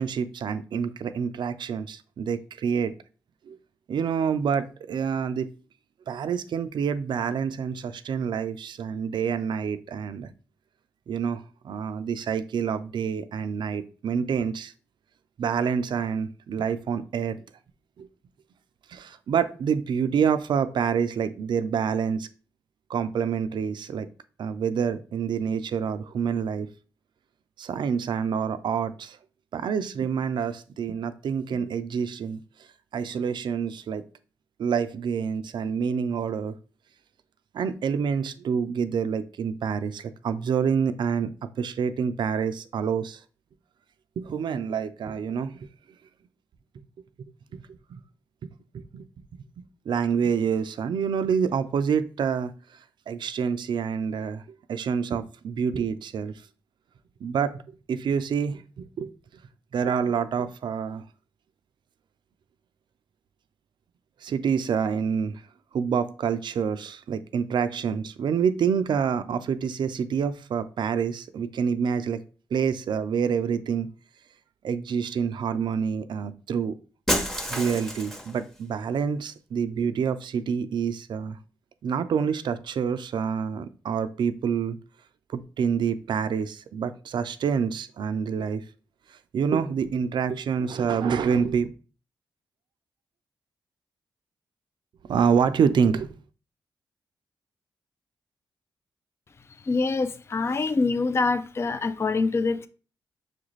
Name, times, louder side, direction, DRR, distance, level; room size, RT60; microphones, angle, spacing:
voice 1, 0.0-2.9 3.5-3.6 3.9-5.5 6.1-10.3 11.1-14.7 15.4-17.4 18.0-18.1 18.9-22.3 22.9-24.1 24.4-26.7 27.6-29.2 29.5-32.4 32.9-34.0 34.6-36.5 37.5-41.3 41.6-43.2 44.2-45.7 47.5-48.0 48.7-49.1 49.9-52.5 53.1-54.4 54.7-56.3 57.2-59.1 59.7-61.0 64.2-65.4 65.7-72.2 72.5-73.9 74.6-76.7 77.5-81.4 81.8-84.8 85.3-88.6 89.3-91.7 95.1-96.1, right 7 dB, 65° right, 0.4 m, -27 dB
Shatter, 77.1-78.4, equal, 5° left, 0.9 m, -28 dB
voice 2, 99.7-102.7, left 3 dB, 30° left, 0.3 m, -25 dB
5.8 x 2.4 x 3.1 m
cardioid pair, 55°, 8 cm